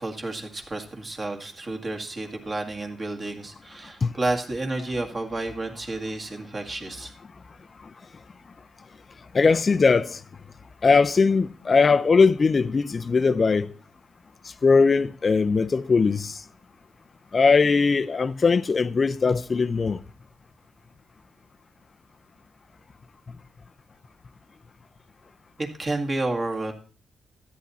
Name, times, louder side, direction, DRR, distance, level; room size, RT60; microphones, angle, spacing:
voice 1, 0.0-7.1 25.6-26.7, right 2 dB, 30° right, 1.9 m, -30 dB
voice 2, 9.3-10.2 10.8-13.7 14.6-16.4 17.3-20.0, left 4 dB, 30° left, 0.4 m, -20 dB
13.0 x 9.4 x 4.2 m
wide cardioid pair, 155°, 0 cm